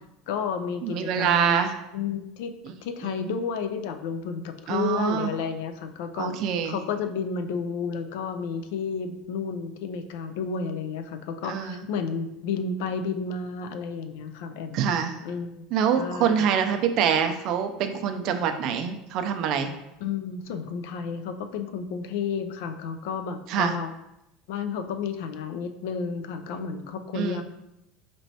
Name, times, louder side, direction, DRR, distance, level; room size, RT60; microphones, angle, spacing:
voice 1, 0.3-1.7 1.9-2.5 2.8-15.6 16.0-16.5 20.0-23.9 24.5-27.4, left 6 dB, 75° left, 8 dB, 0.4 m, -32 dB
voice 2, 0.8-1.7 3.0-3.3 4.7-5.3 6.2-6.8 11.5-11.7 14.7-15.1 15.7-19.7 23.5-23.8 27.1-27.4, right 7 dB, 50° right, 7 dB, 0.4 m, -25 dB
4.3 x 3.0 x 2.8 m, 0.87 s
supercardioid pair, 145°, 0 cm